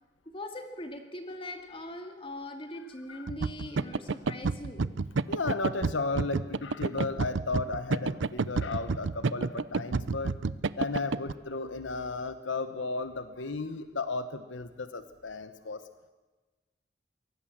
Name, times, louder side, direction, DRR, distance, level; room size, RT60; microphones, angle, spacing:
voice 1, 0.3-4.8, left 1 dB, 30° left, 4 dB, 2.4 m, -41 dB
sound 1, 3.3-11.3, right 4 dB, 80° right, 0.6 m, -29 dB
voice 2, 5.3-10.3 10.8-15.8, left 3 dB, 80° left, 10 dB, 1.0 m, -34 dB
23.5 x 18.0 x 7.4 m, 1.2 s
head